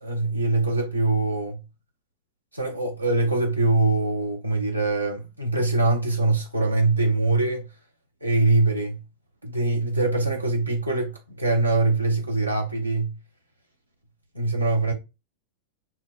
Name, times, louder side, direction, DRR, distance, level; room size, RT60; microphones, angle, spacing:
voice 1, 0.0-1.6 2.5-7.7 8.2-9.0 9.4-13.1 14.3-14.9, right 2 dB, 85° right, 0.6 m, -23 dB
5.5 x 2.1 x 2.2 m
figure-of-eight pair, 90°, 0 cm